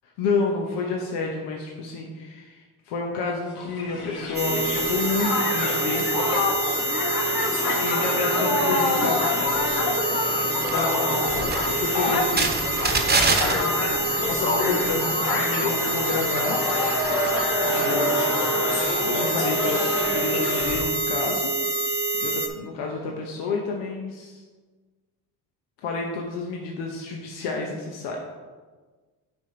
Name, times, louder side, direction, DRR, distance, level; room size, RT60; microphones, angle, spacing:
voice 1, 0.2-6.0 7.3-9.3 10.4-16.6 17.6-18.2 18.6-21.5 22.2-24.4 25.8-28.2, left 4 dB, 85° left, 0 dB, 0.9 m, -30 dB
Crowd, 3.6-20.9, left 3 dB, 65° left, 1.5 m, -27 dB
sound 1, 4.3-22.5, right 2 dB, 25° right, 1.0 m, -26 dB
9.6 x 3.5 x 4.3 m, 1.4 s
cardioid pair, 90°, 41 cm